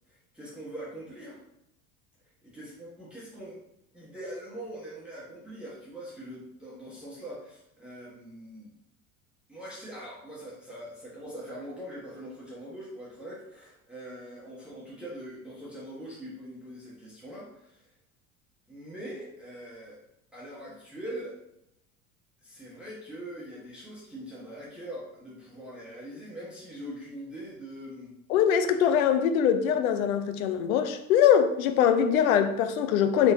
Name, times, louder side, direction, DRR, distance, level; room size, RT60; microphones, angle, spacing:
voice 1, 0.1-1.4 2.4-3.6 3.9-8.7 9.5-17.9 18.7-20.0 20.3-21.4 22.4-28.1, right 1 dB, ahead, 1.3 m, -42 dB
voice 2, 28.3-33.3, left 8 dB, 75° left, 0.6 m, -23 dB
3.9 x 3.7 x 2.7 m
hypercardioid pair, 80°, 43 cm